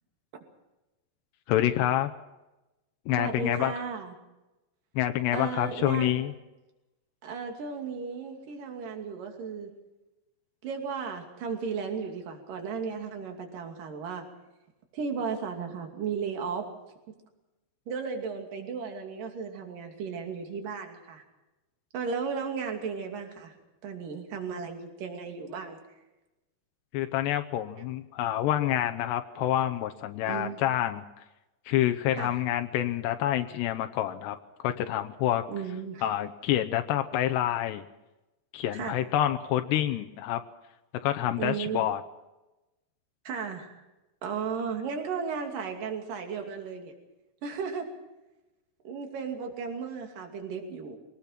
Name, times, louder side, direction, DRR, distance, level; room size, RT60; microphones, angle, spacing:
voice 1, 1.5-2.1 3.1-3.7 5.0-6.3 26.9-31.0 31.7-35.4 36.0-37.9 38.5-40.4 41.0-42.0, left 12 dB, 80° left, 7 dB, 2.9 m, -27 dB
voice 2, 3.2-4.1 5.3-6.2 7.2-9.7 10.6-14.2 14.9-16.7 17.9-21.2 21.9-23.5 23.8-25.8 30.3-30.6 32.2-32.4 35.5-36.1 38.7-39.0 41.4-41.9 43.3-43.8 44.2-46.9 47.4-47.9 48.8-51.0, right 6 dB, 55° right, 3 dB, 4.1 m, -35 dB
24.0 x 19.0 x 5.9 m, 1.0 s
omnidirectional pair, 4.9 m